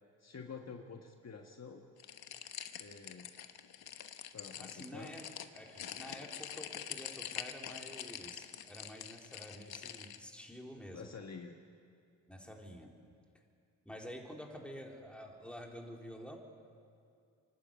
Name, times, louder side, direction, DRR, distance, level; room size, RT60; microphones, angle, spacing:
voice 1, 0.2-1.8 2.8-3.3 4.3-5.1 10.9-11.6, left 5 dB, 40° left, 3 dB, 1.5 m, -48 dB
sound 1, 2.0-10.2, left 9 dB, 70° left, 1.2 m, -45 dB
voice 2, 4.6-5.3 5.5-11.1 12.3-12.9 13.3-13.4 13.9-16.4, equal, 5° left, 1 dB, 3.7 m, -49 dB
26.0 x 12.0 x 8.8 m, 2.4 s
supercardioid pair, 55°, 39 cm